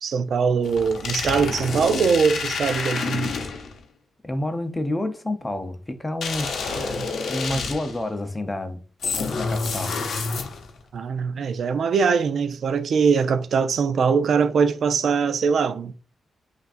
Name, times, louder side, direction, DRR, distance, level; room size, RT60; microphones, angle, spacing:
voice 1, 0.0-3.3 6.7-7.1 7.5-7.6 10.9-15.9, right 5 dB, 70° right, 0.4 m, -22 dB
sound 1, 0.6-3.8 6.2-8.0 9.0-10.8, left 4 dB, 75° left, 0.7 m, -28 dB
voice 2, 4.2-6.8 7.3-8.8 9.3-10.0, left 1 dB, 15° left, 0.6 m, -29 dB
5.7 x 2.5 x 2.5 m
cardioid pair, 105°, 0 cm